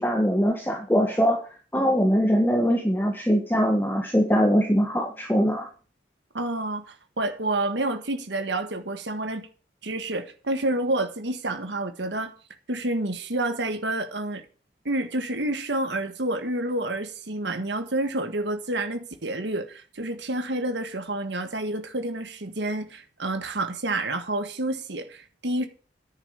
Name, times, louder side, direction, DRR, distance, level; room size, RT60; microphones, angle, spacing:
voice 1, 0.0-1.4 1.7-5.7, equal, 10° left, 1.5 m, -22 dB
voice 2, 6.3-9.5 9.8-12.3 12.7-14.4 14.8-25.7, right 2 dB, 75° right, 1.6 m, -29 dB
10.0 x 7.4 x 6.5 m
head